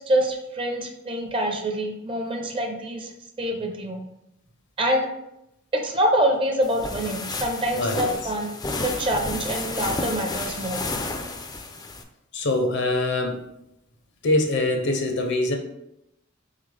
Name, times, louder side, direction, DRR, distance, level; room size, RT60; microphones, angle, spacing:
voice 1, 0.1-3.1 3.4-4.0 4.8-5.0 5.7-10.8, right 1 dB, 25° right, 2 dB, 0.6 m, -25 dB
sound 1, 6.6-12.0, left 3 dB, 20° left, 0.4 m, -31 dB
voice 2, 7.7-8.2 12.3-13.5 14.2-15.5, left 2 dB, 60° left, 4 dB, 0.7 m, -24 dB
4.0 x 3.7 x 3.3 m, 0.85 s
head